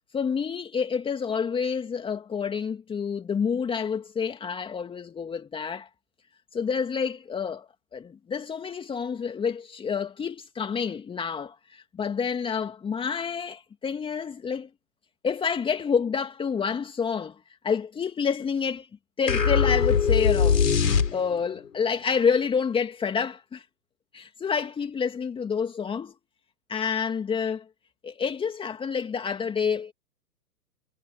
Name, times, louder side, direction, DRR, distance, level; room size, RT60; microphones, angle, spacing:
voice 1, 0.1-5.9 6.5-14.7 15.2-17.4 17.6-18.9 19.2-20.6 21.1-23.6 24.1-26.1 26.7-27.6 28.0-29.9, left 6 dB, 10° left, 2.5 m, -28 dB
sound 1, 19.3-21.5, left 6 dB, 75° left, 5.1 m, -21 dB
figure-of-eight pair, 125°, 48 cm